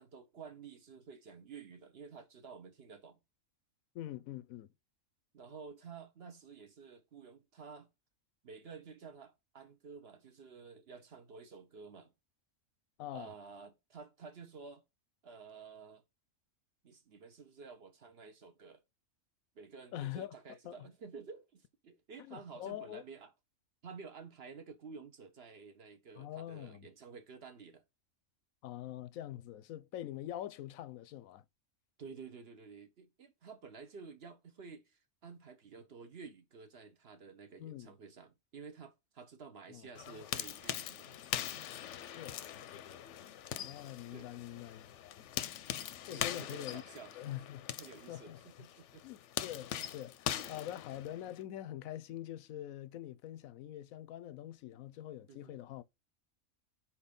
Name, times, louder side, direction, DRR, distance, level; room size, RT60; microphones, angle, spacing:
voice 1, 0.0-3.2 5.3-7.9 8.4-12.1 13.1-14.8 15.2-16.0 16.8-18.8 19.5-23.3 23.8-27.8 32.0-41.2 44.1-44.6 46.1-47.4 47.8-49.0 55.3-55.6, right 5 dB, 50° right, 1.1 m, -52 dB
voice 2, 3.9-4.7 13.0-13.3 19.9-20.3 20.6-20.9 22.2-23.0 26.2-26.9 28.6-31.4 37.6-37.9 39.7-39.9 42.0-42.5 43.5-45.3 46.1-46.8 47.2-47.7 48.1-48.4 49.0-55.8, left 12 dB, 90° left, 1.0 m, -44 dB
sound 1, 39.9-51.4, left 11 dB, 70° left, 0.8 m, -42 dB
4.8 x 4.2 x 5.2 m
omnidirectional pair, 1.4 m